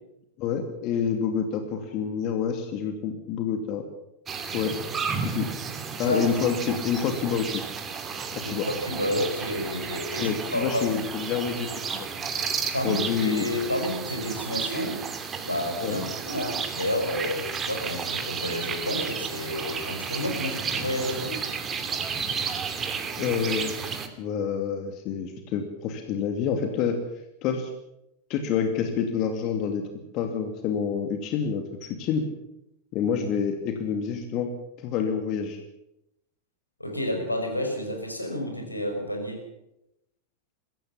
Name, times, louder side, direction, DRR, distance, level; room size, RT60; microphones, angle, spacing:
voice 1, 0.4-3.8 4.5-4.7 5.2-5.5 6.0-7.6 8.4-8.7 10.2-12.1 12.8-13.5 15.8-16.0 23.2-27.0 27.4-27.7 28.3-29.9 30.1-32.2 32.9-34.5 34.8-35.6, left 7 dB, 40° left, 6 dB, 2.6 m, -28 dB
sound 1, 4.3-24.1, right 6 dB, 25° right, 2.6 m, -32 dB
voice 2, 8.8-11.0 12.7-15.0 15.4-17.4 17.7-21.4 36.8-39.5, left 1 dB, 85° left, 3 dB, 5.6 m, -30 dB
22.0 x 16.5 x 7.2 m, 0.85 s
figure-of-eight pair, 90°, 0 cm